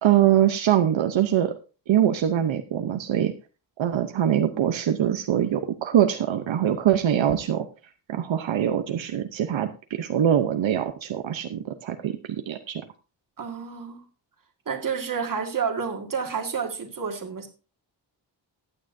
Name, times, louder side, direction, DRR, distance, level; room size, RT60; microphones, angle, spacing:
voice 1, 0.0-1.5 1.9-3.3 3.8-7.7 8.1-9.7 10.0-12.8, right 10 dB, 80° right, 7 dB, 0.8 m, -23 dB
voice 2, 13.4-14.0 14.7-17.5, right 6 dB, 45° right, 3 dB, 1.9 m, -30 dB
15.0 x 9.9 x 2.6 m, 0.33 s
wide cardioid pair, 150°, 45 cm